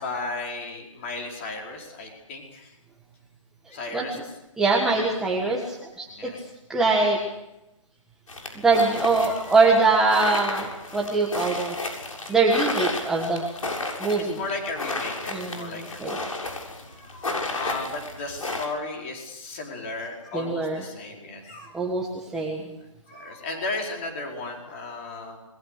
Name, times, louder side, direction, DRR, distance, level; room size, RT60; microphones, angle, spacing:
voice 1, 0.0-2.7 3.7-4.2 6.1-6.4 9.2-9.7 10.7-11.2 12.3-12.4 13.0-13.1 13.6-13.8 14.2-16.3 16.9-21.8 23.1-25.4, left 3 dB, 25° left, 1 dB, 5.0 m, -35 dB
voice 2, 3.9-4.2 4.6-6.1 6.7-7.2 8.5-11.7 12.3-13.4 14.0-14.4 15.3-16.1 20.3-20.8 21.7-22.6, right 3 dB, 5° right, -3 dB, 1.4 m, -23 dB
sound 1, 8.3-18.7, left 2 dB, 85° left, 7.3 m, -32 dB
28.0 x 21.5 x 6.6 m, 0.93 s
hypercardioid pair, 170°, 17 cm